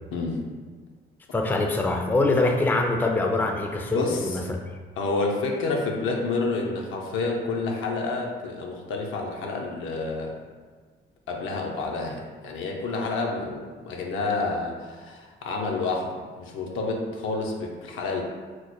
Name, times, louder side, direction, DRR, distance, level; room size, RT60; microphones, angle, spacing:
voice 1, 1.3-4.6, left 2 dB, 10° left, 3 dB, 0.3 m, -24 dB
voice 2, 3.9-4.4 5.0-10.4 11.3-18.2, left 3 dB, 85° left, 0 dB, 0.6 m, -29 dB
3.1 x 2.1 x 4.1 m, 1.5 s
cardioid pair, 90°, 20 cm